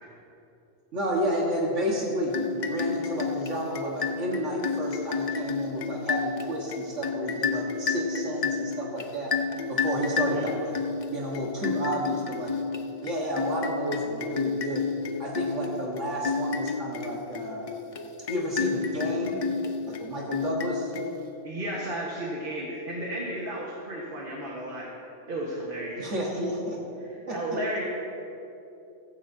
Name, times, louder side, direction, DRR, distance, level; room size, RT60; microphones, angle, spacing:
voice 1, 0.9-9.3 9.7-10.7 11.1-12.5 13.0-14.9 15.2-17.7 18.3-19.4 19.9-20.9 26.0-26.8 27.3-27.4, right 1 dB, 75° right, -3 dB, 1.9 m, -31 dB
sound 1, 2.3-21.5, left 5 dB, 45° left, 0.5 m, -31 dB
voice 2, 10.1-10.5 21.4-24.9 25.3-26.1 27.0-27.8, right 1 dB, 45° right, -4 dB, 1.6 m, -33 dB
16.0 x 15.0 x 2.8 m, 2.8 s
omnidirectional pair, 1.3 m